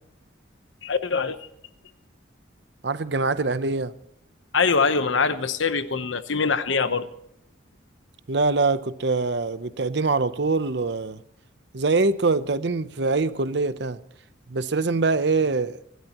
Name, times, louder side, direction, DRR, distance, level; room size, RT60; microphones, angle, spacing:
voice 1, 0.8-1.4 4.5-7.1, left 5 dB, 90° left, 1.0 m, -23 dB
voice 2, 2.8-3.9 8.3-11.2 11.7-14.0 14.5-15.8, right 3 dB, 65° right, 0.7 m, -24 dB
25.0 x 12.5 x 3.0 m
head